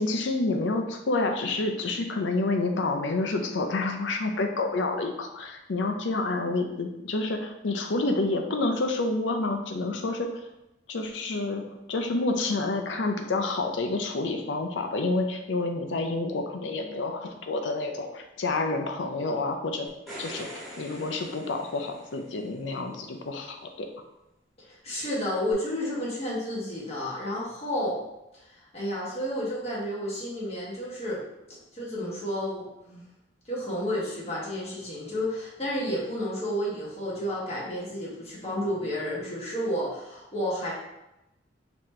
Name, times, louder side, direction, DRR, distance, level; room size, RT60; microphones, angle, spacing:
voice 1, 0.0-10.3 10.9-11.6 11.9-19.9 20.2-23.9, left 2 dB, 90° left, 5 dB, 0.6 m, -28 dB
sound 1, 19.9-22.4 25.5-25.6, right 1 dB, ahead, 1.4 m, -43 dB
voice 2, 24.6-28.0 28.5-33.0 33.5-40.7, equal, 35° left, -6 dB, 1.3 m, -31 dB
4.2 x 2.9 x 3.2 m, 0.91 s
head